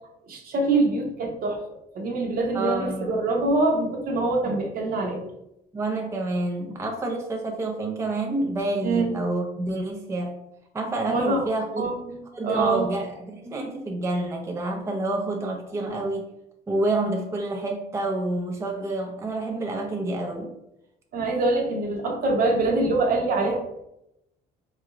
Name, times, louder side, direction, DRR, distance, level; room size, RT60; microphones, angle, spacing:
voice 1, 0.3-1.6 1.9-5.2 8.8-9.1 11.1-11.4 11.8-12.9 21.1-23.6, right 2 dB, 60° right, 2 dB, 0.8 m, -24 dB
voice 2, 2.5-3.2 5.7-10.3 10.7-11.9 12.3-16.2 16.7-20.5, right 2 dB, 15° right, 1 dB, 0.4 m, -28 dB
3.9 x 2.5 x 2.9 m, 0.85 s
cardioid pair, 110°, 17 cm